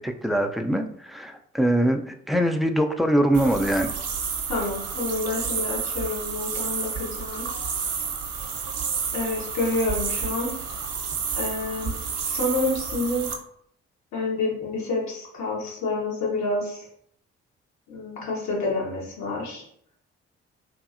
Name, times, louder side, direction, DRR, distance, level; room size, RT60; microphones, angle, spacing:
voice 1, 0.0-3.9, right 1 dB, ahead, 5 dB, 0.3 m, -23 dB
sound 1, 3.3-13.3, right 6 dB, 55° right, 0.6 m, -30 dB
voice 2, 4.5-7.5 9.1-10.6 11.4-11.9 12.2-13.3 14.1-16.9 17.9-19.6, left 2 dB, 65° left, -3 dB, 1.1 m, -28 dB
2.8 x 2.6 x 2.5 m, 0.68 s
hypercardioid pair, 45°, 30 cm